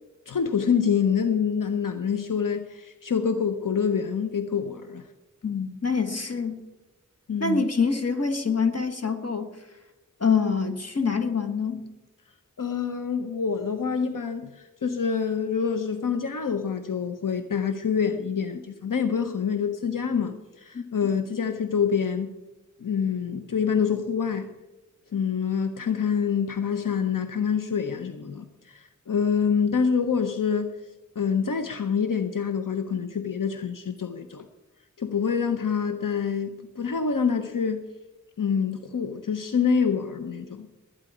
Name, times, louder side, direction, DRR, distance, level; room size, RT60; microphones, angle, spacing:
voice 1, 0.3-5.0 7.3-7.7 12.6-22.3 22.8-24.5 25.1-30.7 31.2-34.5 35.0-37.8 38.4-40.7, left 6 dB, 85° left, 8 dB, 0.8 m, -26 dB
voice 2, 5.4-6.6 7.4-9.5 10.2-11.8 20.7-20.8, left 5 dB, 50° left, 6 dB, 1.6 m, -25 dB
20.0 x 8.9 x 4.9 m, 1.1 s
wide cardioid pair, 50°, 32 cm